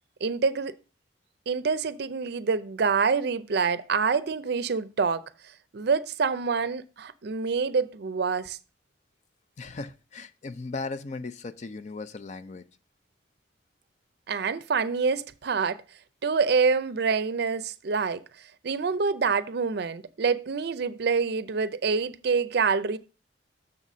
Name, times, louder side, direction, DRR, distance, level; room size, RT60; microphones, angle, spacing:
voice 1, 0.2-0.7 1.5-5.2 5.7-8.6 14.3-15.8 16.2-18.2 18.6-23.0, right 5 dB, 60° right, 0.5 m, -26 dB
voice 2, 9.6-12.6, left 3 dB, 40° left, 0.4 m, -37 dB
6.6 x 4.1 x 6.0 m
head